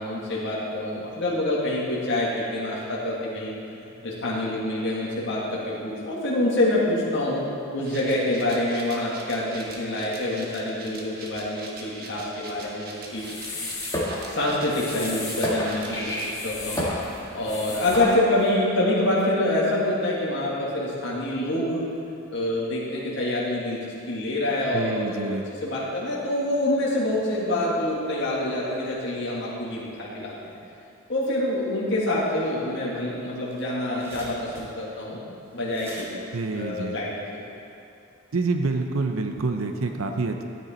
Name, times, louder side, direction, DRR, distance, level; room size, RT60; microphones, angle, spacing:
voice 1, 0.0-3.5 3.8-7.4 7.7-13.6 14.2-16.9 17.3-21.9 22.3-23.8 24.1-25.4 25.6-30.6 31.1-35.2 35.5-36.1 36.5-37.1, left 1 dB, 55° left, -6 dB, 2.0 m, -26 dB
sound 1, 7.8-16.3, right 2 dB, 45° right, 1.4 m, -43 dB
sound 2, 13.1-18.5, left 1 dB, 15° left, 1.8 m, -31 dB
voice 2, 24.7-25.4 36.3-37.0 38.3-40.4, right 3 dB, 75° right, 5 dB, 0.7 m, -27 dB
sound 3, 33.3-37.5, equal, 10° right, 1.5 m, -46 dB
13.0 x 9.5 x 4.4 m, 2.6 s
head